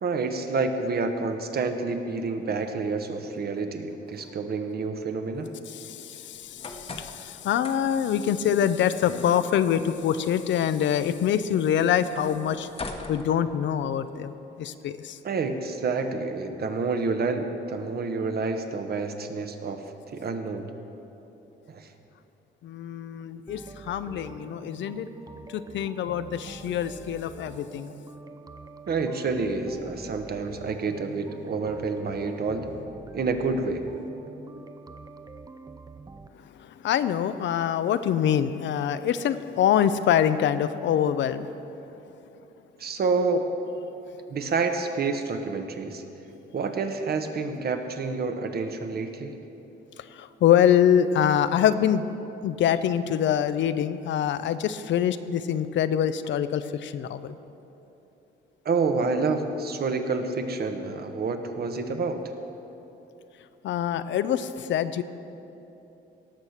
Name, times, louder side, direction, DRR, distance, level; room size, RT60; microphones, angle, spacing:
voice 1, 0.0-5.5 15.2-20.7 21.7-21.9 28.9-32.7 33.1-33.8 42.8-43.5 44.3-46.0 46.5-49.4 58.6-62.2, right 4 dB, 50° right, 6 dB, 1.1 m, -28 dB
voice 2, 5.7-12.7 13.1-15.2 22.6-25.1 25.5-27.9 36.6-41.5 50.1-52.1 52.4-57.3 63.6-65.0, left 9 dB, 70° left, 12 dB, 0.6 m, -25 dB
sound 1, 6.3-14.1, left 3 dB, 30° left, 1.0 m, -44 dB
sound 2, 23.5-36.3, right 4 dB, 20° right, 0.5 m, -45 dB
18.0 x 6.6 x 5.8 m, 3.0 s
cardioid pair, 90°, 20 cm